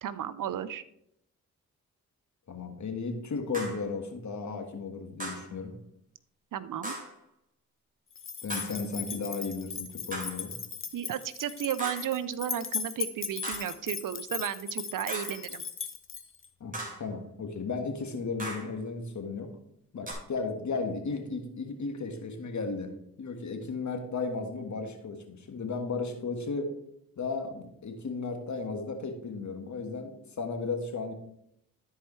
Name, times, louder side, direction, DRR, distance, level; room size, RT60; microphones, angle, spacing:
voice 1, 0.0-0.8 6.5-7.0 10.9-15.6, right 10 dB, 65° right, 15 dB, 0.6 m, -34 dB
voice 2, 2.5-5.7 8.4-10.6 16.6-16.7 17.0-19.5 19.9-22.9 23.2-26.7 27.2-31.1, left 4 dB, 55° left, 5 dB, 1.5 m, -35 dB
sound 1, 3.5-3.9 5.2-5.5 6.8-7.2 8.5-8.9 10.1-10.5 11.8-12.2 13.4-13.8 15.1-15.5 16.7-17.1 18.4-18.8 20.1-20.2, right 1 dB, 25° right, 3.3 m, -38 dB
sound 2, 8.2-16.5, left 6 dB, 35° left, 0.9 m, -38 dB
13.5 x 4.6 x 3.2 m, 0.74 s
supercardioid pair, 50°, 35 cm